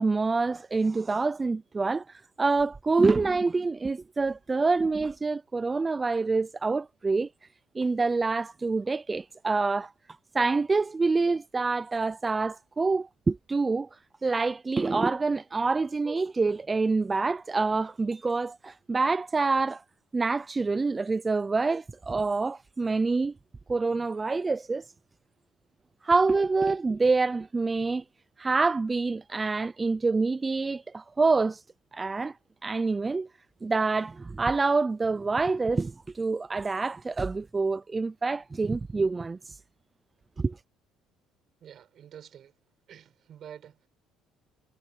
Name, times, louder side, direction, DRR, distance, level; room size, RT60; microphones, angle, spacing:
voice 1, 0.0-7.5 7.7-9.9 10.3-19.8 20.1-23.3 23.7-24.9 26.0-28.0 28.4-31.6 31.9-32.4 32.6-33.3 33.6-39.6 40.4-40.5, right 3 dB, 25° right, 0.5 m, -26 dB
voice 2, 41.6-42.6 42.9-43.9, right 9 dB, 55° right, 7.8 m, -48 dB
cardioid pair, 95°, 0 cm